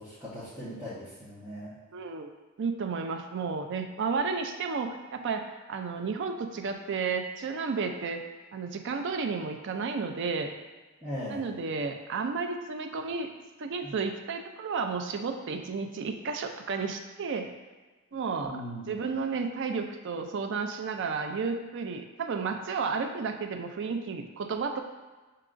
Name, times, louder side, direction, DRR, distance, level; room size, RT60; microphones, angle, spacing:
voice 1, 0.0-1.7 11.0-11.4 13.8-13.9 18.4-19.0, equal, 10° right, -15 dB, 1.1 m, -39 dB
voice 2, 1.9-2.3 2.6-8.2 8.5-10.5 11.3-13.3 13.6-17.5 18.1-18.6 18.9-24.8, right 5 dB, 60° right, 5 dB, 0.4 m, -32 dB
7.3 x 2.9 x 2.5 m, 1.3 s
head